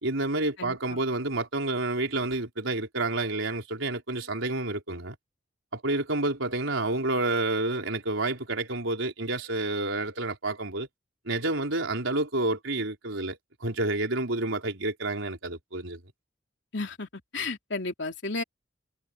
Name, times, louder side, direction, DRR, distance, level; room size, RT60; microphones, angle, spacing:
voice 1, 0.0-5.2 5.7-10.9 11.2-16.0, right 2 dB, 90° right, 4.4 m, -29 dB
voice 2, 0.6-1.0 16.7-17.1 17.3-18.4, left 3 dB, 65° left, 3.2 m, -33 dB
head